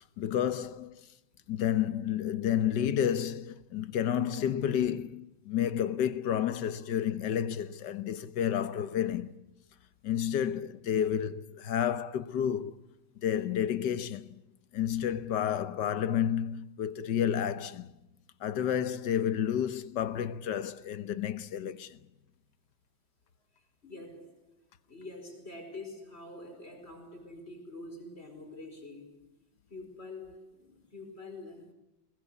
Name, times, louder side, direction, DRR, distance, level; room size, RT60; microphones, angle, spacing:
voice 1, 0.2-1.0 1.5-9.4 10.0-12.7 13.2-14.4 14.7-17.9 18.4-22.0, left 9 dB, 65° left, 1.5 m, -30 dB
voice 2, 23.8-24.5 24.9-29.3 29.7-31.7, left 2 dB, 30° left, 5.3 m, -46 dB
21.5 x 21.0 x 8.3 m
omnidirectional pair, 2.1 m